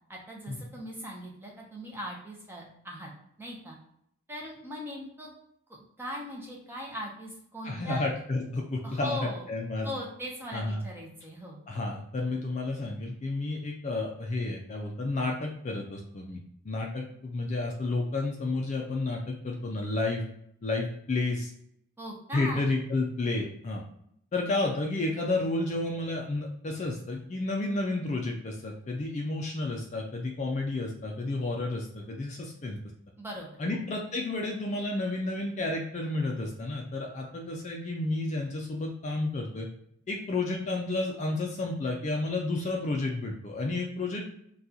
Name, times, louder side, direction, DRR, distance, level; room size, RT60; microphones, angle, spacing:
voice 1, 0.1-3.1 3.4-3.8 4.3-5.3 5.7-8.0 8.8-9.4 9.8-11.6 22.0-22.7 33.2-33.8, equal, 10° right, -2 dB, 0.6 m, -39 dB
voice 2, 7.6-9.9 10.5-10.8 11.7-16.4 16.6-20.2 20.6-21.5 22.3-23.8 24.3-32.8 33.6-39.7 40.1-44.3, left 2 dB, 30° left, 1 dB, 0.4 m, -31 dB
2.8 x 2.3 x 3.7 m, 0.72 s
head